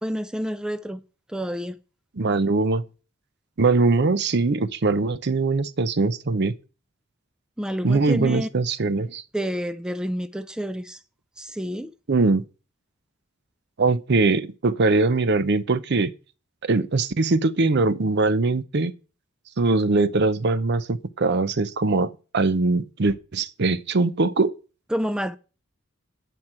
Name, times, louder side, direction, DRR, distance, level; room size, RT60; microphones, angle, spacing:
voice 1, 0.0-1.0 1.3-1.8 7.6-8.5 9.3-11.0 11.4-11.9 24.9-25.4, equal, 5° right, 0.4 m, -29 dB
voice 2, 2.2-2.8 3.6-6.5 7.8-9.2 12.1-12.4 13.8-16.1 16.6-18.9 19.6-24.5, right 3 dB, 55° right, 0.6 m, -22 dB
11.0 x 4.6 x 7.7 m
head